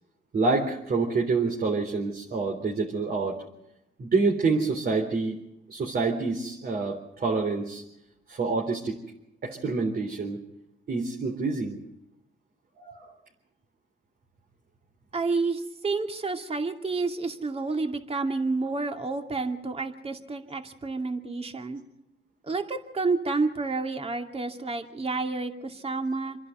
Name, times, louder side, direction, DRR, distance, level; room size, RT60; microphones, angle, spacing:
voice 1, 0.3-3.4 4.0-5.4 5.7-7.8 8.3-9.0 9.4-10.4 10.9-11.8 12.8-13.1, right 4 dB, 50° right, 0 dB, 3.8 m, -27 dB
voice 2, 15.1-21.8 22.4-26.4, right 3 dB, 30° right, 5 dB, 2.6 m, -29 dB
27.5 x 11.0 x 9.2 m, 0.86 s
cardioid pair, 90°, 20 cm